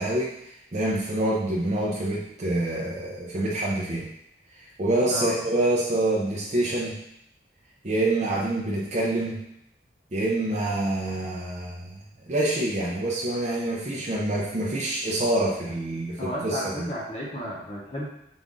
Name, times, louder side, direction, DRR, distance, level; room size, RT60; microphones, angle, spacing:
voice 1, 0.0-4.1 4.6-7.0 7.8-9.4 10.1-12.0 12.3-16.9, right 1 dB, 40° right, -5 dB, 0.5 m, -26 dB
voice 2, 5.0-5.4 16.2-18.1, equal, 30° left, -5 dB, 0.7 m, -33 dB
5.0 x 2.5 x 3.6 m, 0.78 s
head